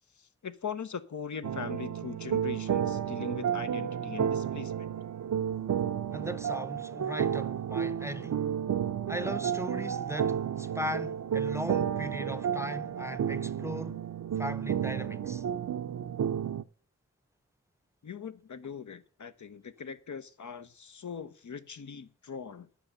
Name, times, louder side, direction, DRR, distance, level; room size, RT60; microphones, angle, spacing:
voice 1, 0.2-4.9 18.0-22.7, left 6 dB, 70° left, 0.7 m, -41 dB
sound 1, 1.4-16.6, right 9 dB, 75° right, 0.5 m, -32 dB
voice 2, 6.1-8.4 9.1-14.0 14.4-15.4, equal, 10° right, 0.6 m, -38 dB
9.6 x 5.7 x 6.4 m
cardioid pair, 40°, 30 cm